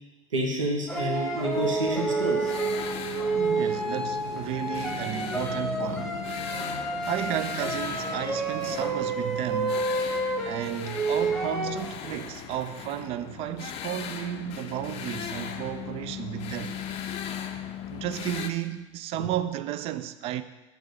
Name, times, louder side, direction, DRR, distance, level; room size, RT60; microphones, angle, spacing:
voice 1, 0.3-2.5, right 1 dB, 75° right, 1.2 m, -29 dB
sound 1, 0.9-12.3, right 3 dB, 5° left, 1.0 m, -30 dB
sound 2, 1.5-18.5, left 9 dB, 35° left, 0.5 m, -38 dB
sound 3, 2.4-9.4, left 2 dB, 80° left, 0.6 m, -45 dB
voice 2, 3.4-6.2 7.1-9.9 10.4-16.8 17.9-20.4, right 12 dB, 40° right, 0.4 m, -33 dB
6.6 x 4.6 x 4.2 m
figure-of-eight pair, 75°, 16 cm